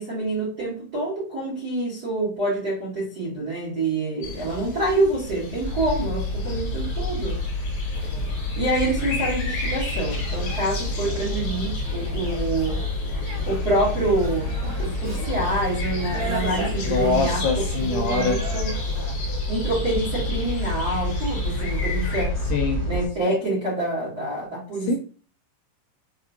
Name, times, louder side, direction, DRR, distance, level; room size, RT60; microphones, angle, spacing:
voice 1, 0.0-7.4 8.5-12.8 13.4-14.5 14.8-18.8 19.5-22.3 22.8-25.0, right 2 dB, 90° right, 0.8 m, -26 dB
sound 1, 4.2-22.3, left 4 dB, 65° left, 3.2 m, -35 dB
sound 2, 5.6-23.1, left 2 dB, 50° left, 0.4 m, -29 dB
sound 3, 7.9-19.1, right 1 dB, 65° right, 1.5 m, -37 dB
voice 2, 16.9-18.4 22.5-22.8 24.9-25.0, left 3 dB, 85° left, 2.4 m, -24 dB
7.0 x 2.4 x 2.6 m
omnidirectional pair, 5.3 m